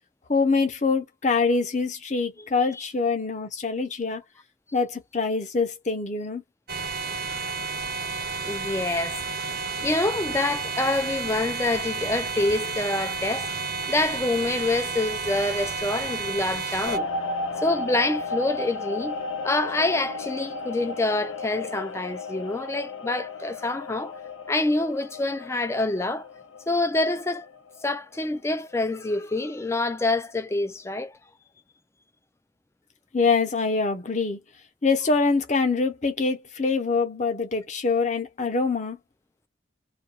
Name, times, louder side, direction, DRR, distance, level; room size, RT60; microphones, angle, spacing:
voice 1, 0.3-4.2 4.7-6.4 33.1-34.4 34.8-39.0, left 4 dB, 40° left, 0.7 m, -24 dB
sound 1, 6.7-17.0, right 4 dB, 50° right, 0.5 m, -31 dB
voice 2, 8.4-9.2 9.8-13.5 13.9-17.1 17.5-24.1 24.5-26.3 26.7-27.5 27.8-31.1, left 2 dB, 15° left, 0.3 m, -26 dB
sound 2, 16.8-28.2 28.5-28.9, left 3 dB, 90° left, 0.6 m, -34 dB
2.3 x 2.2 x 2.8 m
head